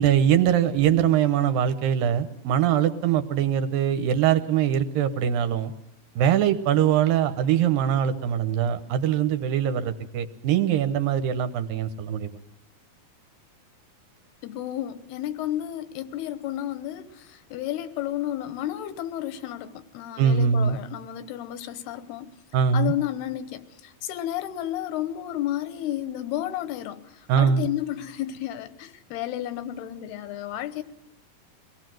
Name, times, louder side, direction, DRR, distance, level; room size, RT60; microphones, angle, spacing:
voice 1, 0.0-5.7 6.2-12.4 20.2-20.8 22.5-22.9 27.3-27.7, right 9 dB, 75° right, 9 dB, 2.6 m, -22 dB
voice 2, 14.4-22.3 22.7-27.0 27.4-30.8, left 12 dB, 90° left, 13 dB, 3.1 m, -32 dB
23.0 x 18.0 x 7.8 m, 0.80 s
omnidirectional pair, 4.4 m